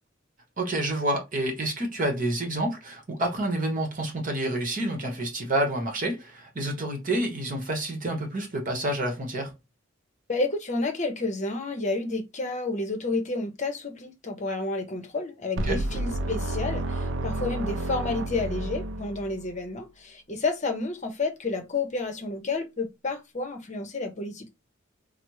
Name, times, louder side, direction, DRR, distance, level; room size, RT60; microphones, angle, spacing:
voice 1, 0.6-9.5 15.6-15.8, right 1 dB, 45° right, 1.0 m, -28 dB
voice 2, 10.3-24.5, left 3 dB, 35° left, 0.7 m, -30 dB
sound 1, 15.6-19.6, right 1 dB, 65° right, 0.4 m, -30 dB
3.3 x 2.0 x 3.0 m
head